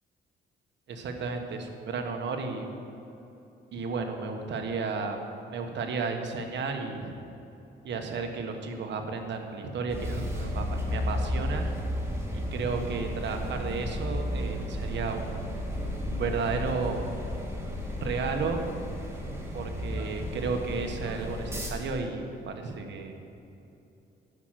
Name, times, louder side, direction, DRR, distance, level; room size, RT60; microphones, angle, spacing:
voice 1, 0.9-2.7 3.7-5.2 5.5-7.1 7.8-11.6 12.3-15.5 16.0-17.0 18.0-18.6 19.5-23.1, right 4 dB, 65° right, 4 dB, 1.4 m, -33 dB
sound 1, 9.9-21.7, left 1 dB, 15° right, 2.0 m, -33 dB
11.0 x 6.2 x 7.6 m, 2.8 s
cardioid pair, 90°, 20 cm